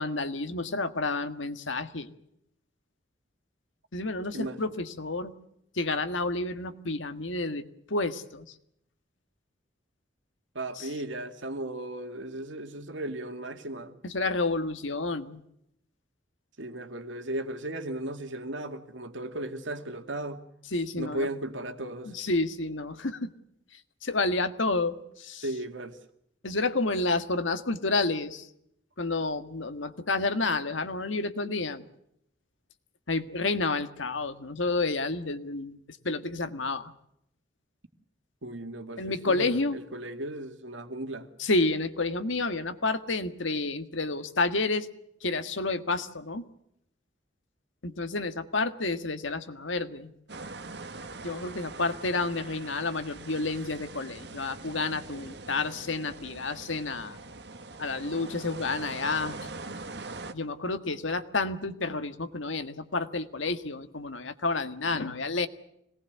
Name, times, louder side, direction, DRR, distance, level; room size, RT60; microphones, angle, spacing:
voice 1, 0.0-2.1 3.9-5.3 5.7-8.4 10.7-10.9 14.0-15.4 20.7-21.3 22.0-23.3 24.0-25.4 26.4-28.5 29.0-31.8 33.1-35.8 36.0-36.9 39.0-39.8 41.4-44.9 45.2-46.5 47.8-50.1 51.2-57.2 57.8-59.4 60.3-65.5, left 3 dB, 90° left, 1.7 m, -30 dB
voice 2, 10.5-14.0 16.6-20.4 21.0-22.1 25.4-26.0 38.4-41.3, right 1 dB, 85° right, 2.4 m, -36 dB
sound 1, 50.3-60.3, right 3 dB, 60° right, 1.7 m, -42 dB
25.5 x 19.0 x 8.1 m
head